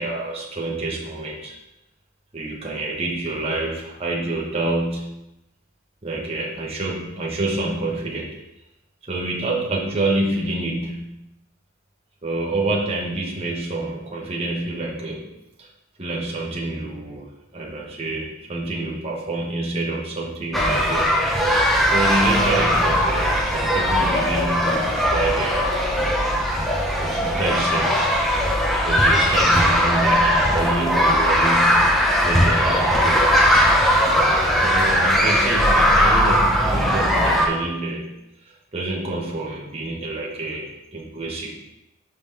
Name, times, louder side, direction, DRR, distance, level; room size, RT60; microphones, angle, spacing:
voice 1, 0.0-1.5 2.3-5.2 6.0-8.4 9.0-11.1 12.2-15.3 15.6-15.7 16.0-21.2 21.9-25.7 27.0-28.1 28.8-31.9 32.2-33.3 34.6-38.1 38.4-41.6, right 2 dB, 30° right, -3 dB, 1.0 m, -27 dB
sound 1, 20.5-37.5, equal, ahead, 0.7 m, -19 dB
5.2 x 4.0 x 5.6 m, 0.91 s
head